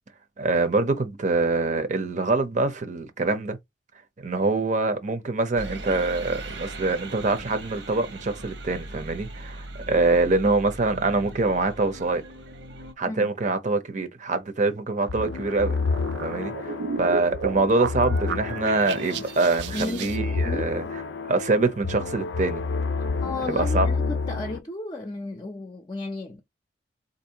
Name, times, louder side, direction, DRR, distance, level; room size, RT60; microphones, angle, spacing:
voice 1, 0.4-3.6 4.2-12.2 13.0-15.8 16.2-21.0 21.3-22.6 23.5-23.9, right 3 dB, 45° right, 0.7 m, -24 dB
sound 1, 5.6-12.9, right 2 dB, 85° right, 1.2 m, -39 dB
sound 2, 15.0-20.2, right 6 dB, 70° right, 0.4 m, -34 dB
sound 3, 15.1-24.6, left 4 dB, 80° left, 0.5 m, -29 dB
voice 2, 19.7-20.7 23.2-26.4, left 2 dB, 25° left, 0.6 m, -34 dB
4.0 x 2.6 x 2.9 m
head